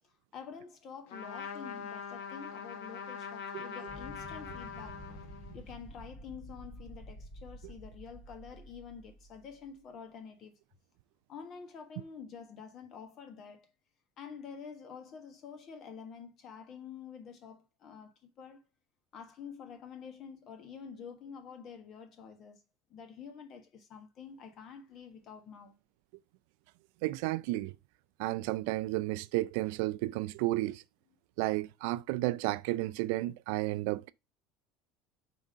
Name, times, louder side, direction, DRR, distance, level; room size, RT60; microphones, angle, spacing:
voice 1, 0.0-5.0 5.5-10.5 11.3-13.7 14.2-18.6 19.1-22.6 22.9-25.8, left 6 dB, 35° left, 1.4 m, -48 dB
Trumpet, 1.1-5.7, left 6 dB, 80° left, 1.4 m, -43 dB
sound 1, 3.9-9.6, equal, 5° right, 1.8 m, -49 dB
voice 2, 27.0-27.7 28.2-30.8 31.4-34.1, right 18 dB, 70° right, 0.3 m, -32 dB
5.2 x 3.6 x 5.4 m
cardioid pair, 165°, 0 cm